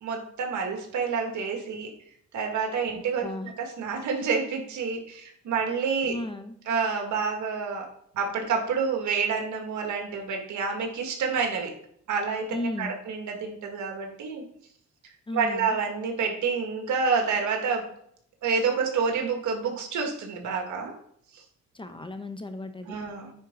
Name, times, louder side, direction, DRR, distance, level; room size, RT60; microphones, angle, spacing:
voice 1, 0.0-1.9 2.3-6.2 6.6-7.9 8.1-11.7 12.1-14.4 15.3-17.9 18.4-20.9 22.9-23.3, right 5 dB, 75° right, 2 dB, 1.8 m, -28 dB
voice 2, 6.1-6.6 12.5-12.9 15.3-15.7 21.7-23.0, left 1 dB, 15° left, 8 dB, 0.7 m, -34 dB
9.6 x 4.5 x 3.7 m, 0.67 s
cardioid pair, 90°, 30 cm